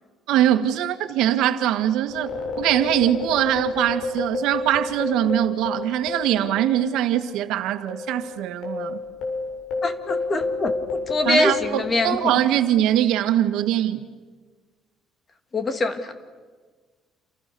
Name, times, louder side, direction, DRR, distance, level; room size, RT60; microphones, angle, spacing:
voice 1, 0.3-2.3 2.6-9.0 11.3-14.0, right 12 dB, 85° right, 1.8 m, -22 dB
sound 1, 2.0-6.9 7.1-7.3 7.9-12.6, left 3 dB, 65° left, 7.4 m, -30 dB
voice 2, 9.8-10.7 11.1-12.3 15.5-16.1, left 2 dB, 30° left, 2.5 m, -24 dB
29.0 x 28.5 x 7.0 m
cardioid pair, 135°, 0 cm